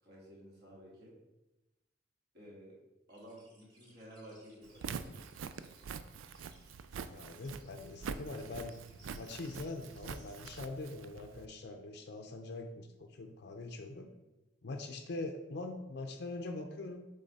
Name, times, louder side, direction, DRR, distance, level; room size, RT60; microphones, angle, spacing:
voice 1, 0.0-1.1 2.3-2.8 3.1-5.2, equal, 55° right, -4 dB, 2.0 m, -53 dB
sound 1, 3.1-10.6, right 1 dB, 25° right, 1.8 m, -65 dB
Walk footsteps, 4.7-11.5, right 6 dB, 85° right, 0.4 m, -45 dB
voice 2, 7.1-8.8 9.1-14.1 14.6-17.1, left 2 dB, 60° left, 4 dB, 0.5 m, -43 dB
7.4 x 3.5 x 4.1 m, 1.0 s
head